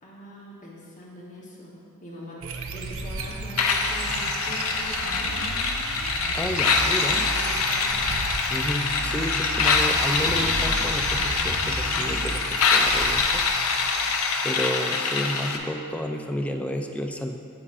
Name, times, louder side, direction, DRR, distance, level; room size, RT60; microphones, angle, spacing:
voice 1, 0.0-1.7 2.0-2.4 2.7-5.6 7.3-8.2, equal, 35° left, -5 dB, 1.0 m, -43 dB
sound 1, 2.4-14.4, right 3 dB, 65° right, 0.6 m, -34 dB
sound 2, 3.6-15.6, left 4 dB, 75° left, 0.6 m, -24 dB
voice 2, 6.3-7.3 8.5-13.5 14.4-17.4, equal, 5° left, 4 dB, 0.3 m, -31 dB
9.7 x 7.7 x 2.5 m, 2.5 s
head